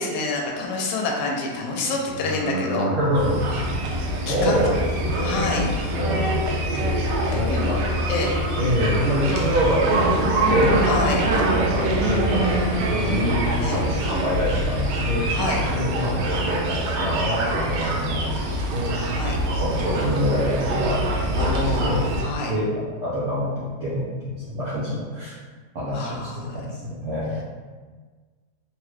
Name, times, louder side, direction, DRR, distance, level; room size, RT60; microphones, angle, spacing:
voice 1, 0.0-2.9 4.3-4.5 5.2-5.7 7.3-7.8 8.1-8.3 10.8-11.3 13.6-13.8 15.3-15.6 19.1-19.4 21.4-22.5 25.9-26.6, left 3 dB, 80° left, 0 dB, 1.2 m, -27 dB
voice 2, 2.1-3.6 4.2-5.6 5.9-6.9 7.2-7.8 8.5-10.8 11.3-12.5 12.9-13.4 13.7-15.3 15.7-19.0 19.5-21.0 21.3-22.0 22.5-22.7 23.0-25.4 25.7-27.4, equal, 60° right, -9 dB, 0.8 m, -26 dB
sound 1, 3.1-22.2, right 1 dB, 85° right, 1.2 m, -24 dB
3.2 x 2.3 x 3.1 m, 1.4 s
omnidirectional pair, 1.8 m